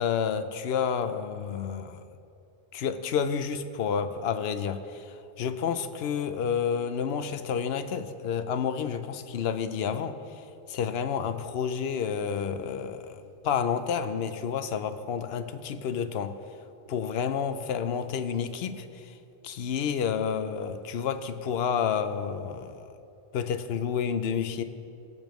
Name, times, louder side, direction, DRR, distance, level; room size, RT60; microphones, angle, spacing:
voice 1, 0.0-2.0 2.7-10.4 10.7-16.3 16.9-19.2 19.4-22.8 23.3-24.6, left 7 dB, 65° left, 10 dB, 0.8 m, -30 dB
19.0 x 6.9 x 3.1 m, 2.7 s
omnidirectional pair, 1.2 m